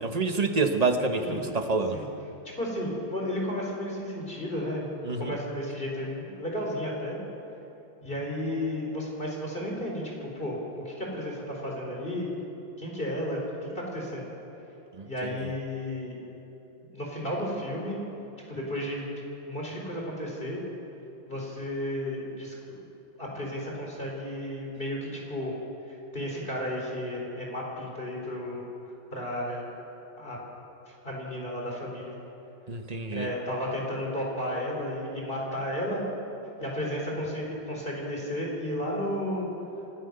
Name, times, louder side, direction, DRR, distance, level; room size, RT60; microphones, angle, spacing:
voice 1, 0.0-2.0 5.0-5.3 14.9-15.4 32.7-33.3, right 3 dB, 30° right, 6 dB, 0.8 m, -27 dB
voice 2, 1.2-1.5 1.9-2.1 2.6-4.9 5.2-7.2 8.0-12.3 12.8-13.4 13.7-14.3 15.0-16.2 16.9-18.0 18.5-19.1 19.5-20.6 21.3-22.8 23.2-25.5 25.9-28.6 29.1-29.6 30.2-30.4 31.0-32.1 33.1-36.0 36.6-39.5, left 1 dB, 25° left, -2 dB, 4.2 m, -33 dB
27.0 x 15.5 x 6.7 m, 3.0 s
omnidirectional pair, 2.2 m